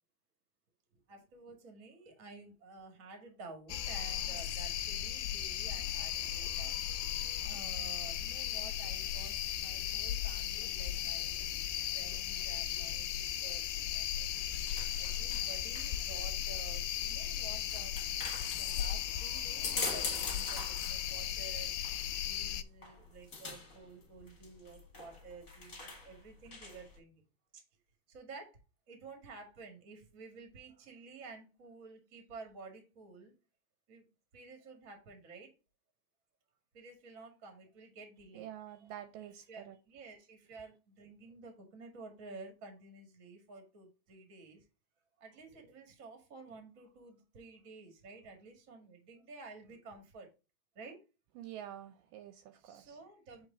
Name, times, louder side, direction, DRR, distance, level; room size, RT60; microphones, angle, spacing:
voice 1, 0.9-6.8 7.4-11.6 11.9-14.3 15.0-18.0 18.6-27.2 27.5-27.6 28.1-28.6 28.9-33.3 33.9-34.1 34.3-35.5 36.7-38.5 39.5-44.6 45.2-50.3 50.7-51.0 52.5-53.5, right 3 dB, 35° right, 1.5 m, -52 dB
sound 1, 3.7-22.6, left 11 dB, 80° left, 2.3 m, -36 dB
sound 2, 14.0-27.0, left 3 dB, 30° left, 1.6 m, -45 dB
voice 2, 38.3-39.8 51.4-53.0, right 11 dB, 80° right, 2.2 m, -48 dB
6.4 x 4.6 x 3.7 m
omnidirectional pair, 4.1 m